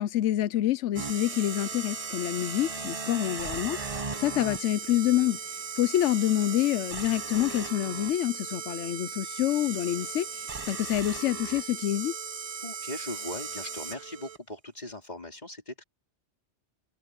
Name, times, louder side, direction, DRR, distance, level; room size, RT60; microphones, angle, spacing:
voice 1, 0.0-5.4 5.8-12.1, left 12 dB, 90° left, 0.9 m, -27 dB
sound 1, 1.0-14.4, right 5 dB, 35° right, 1.0 m, -37 dB
voice 2, 12.6-15.8, left 1 dB, 35° left, 3.8 m, -39 dB
omnidirectional pair, 1.2 m